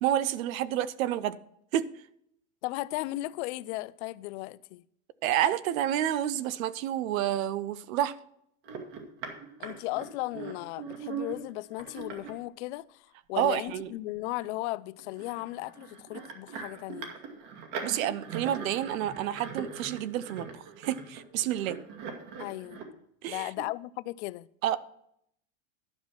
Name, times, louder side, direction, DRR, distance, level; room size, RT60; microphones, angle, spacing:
voice 1, 0.0-1.4 1.7-1.9 5.2-8.1 13.4-13.9 17.8-21.8 23.2-23.5 24.6-24.8, right 11 dB, 80° right, 0.8 m, -29 dB
voice 2, 2.6-4.8 9.6-17.1 22.4-22.8 23.3-24.5, left 18 dB, 55° left, 0.5 m, -36 dB
sound 1, 8.6-12.3 13.7-13.8 14.1-14.2 15.0-22.8, right 6 dB, 60° right, 2.2 m, -41 dB
11.5 x 5.6 x 6.0 m
supercardioid pair, 140°, 40 cm